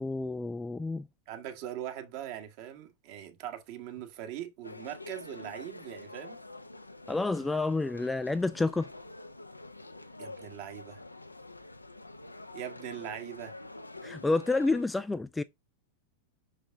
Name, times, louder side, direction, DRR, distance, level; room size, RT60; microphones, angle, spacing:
voice 1, 0.0-1.1 7.1-8.9 14.0-15.4, left 3 dB, 10° left, 0.3 m, -29 dB
voice 2, 1.3-6.4 10.2-11.0 12.5-13.5, right 11 dB, 45° right, 1.6 m, -41 dB
sound 1, 4.6-14.8, left 2 dB, 85° left, 0.6 m, -47 dB
6.0 x 5.0 x 3.7 m
figure-of-eight pair, 90°, 0 cm